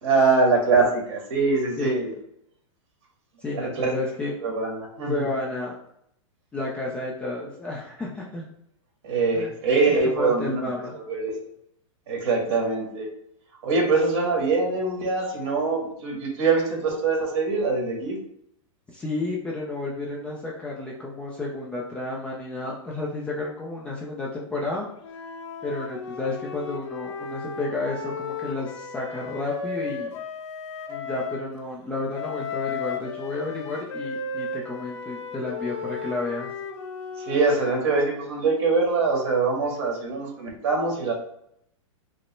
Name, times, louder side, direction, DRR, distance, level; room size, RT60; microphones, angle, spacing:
voice 1, 0.0-2.1 3.5-4.0 4.4-5.2 9.0-11.4 12.1-13.1 13.6-18.2 37.2-41.1, right 4 dB, 50° right, 0 dB, 1.7 m, -23 dB
voice 2, 3.4-4.3 5.1-5.7 6.5-8.5 9.3-9.5 10.0-11.0 18.9-24.9 25.6-30.1 30.9-36.5, left 2 dB, 5° left, -4 dB, 0.4 m, -31 dB
Wind instrument woodwind instrument, 25.0-31.4 32.1-38.2, left 5 dB, 60° left, 0.7 m, -35 dB
5.2 x 2.0 x 4.3 m, 0.73 s
hypercardioid pair, 160°, 17 cm